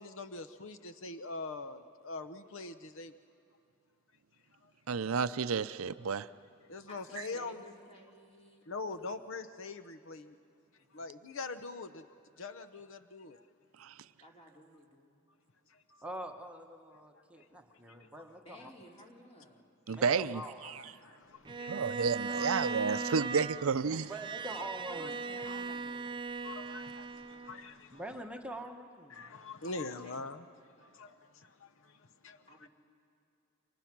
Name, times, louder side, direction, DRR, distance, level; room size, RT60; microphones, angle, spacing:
voice 1, 0.0-3.1 4.6-4.7 6.7-7.6 8.7-10.4 10.9-12.1 12.4-13.4 15.7-16.0 17.4-18.1 19.9-20.0 20.6-22.5 24.6-24.7 25.0-25.1 26.4-28.0 29.1-32.7, left 3 dB, 65° left, 0.8 m, -44 dB
voice 2, 4.9-6.3 13.8-13.9 19.9-20.8 21.7-24.0, right 5 dB, 75° right, 0.5 m, -31 dB
voice 3, 6.9-8.6 9.0-9.3 10.8-11.0 14.2-15.2 18.4-19.6 23.9-26.3 26.6-27.0 29.9-30.3 30.9-31.0 32.5-32.7, equal, 30° left, 3.1 m, -55 dB
voice 4, 16.0-18.6 19.9-20.6 24.1-25.2 27.9-29.3, right 1 dB, 5° right, 1.1 m, -44 dB
Bowed string instrument, 21.5-27.7, right 4 dB, 25° right, 0.5 m, -39 dB
30.0 x 24.5 x 6.0 m
head